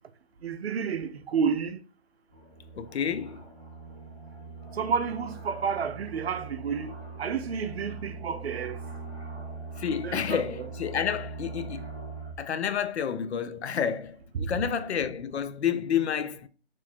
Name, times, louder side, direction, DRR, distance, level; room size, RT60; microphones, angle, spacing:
voice 1, 0.4-1.8 4.7-8.8 10.0-10.4 14.3-14.5, right 6 dB, 65° right, 0.5 m, -30 dB
sound 1, 2.3-12.3, right 3 dB, 15° right, 0.6 m, -41 dB
voice 2, 2.7-3.5 9.8-11.9 12.4-16.5, left 8 dB, 75° left, 0.5 m, -30 dB
3.1 x 2.1 x 4.2 m
hypercardioid pair, 165°, 33 cm